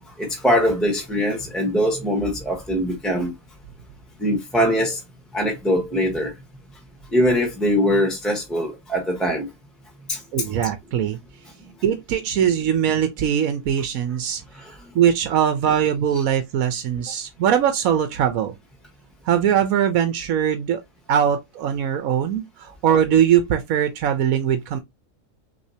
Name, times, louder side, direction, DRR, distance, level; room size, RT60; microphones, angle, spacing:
voice 1, 0.2-3.3 4.2-5.0 5.3-6.3 7.1-9.5 10.1-10.2 14.5-14.8, equal, ahead, 1.2 m, -22 dB
voice 2, 10.3-11.2 11.8-14.4 14.9-18.5 19.2-20.8 21.1-24.8, right 9 dB, 85° right, 1.2 m, -21 dB
6.4 x 2.8 x 2.8 m
omnidirectional pair, 1.4 m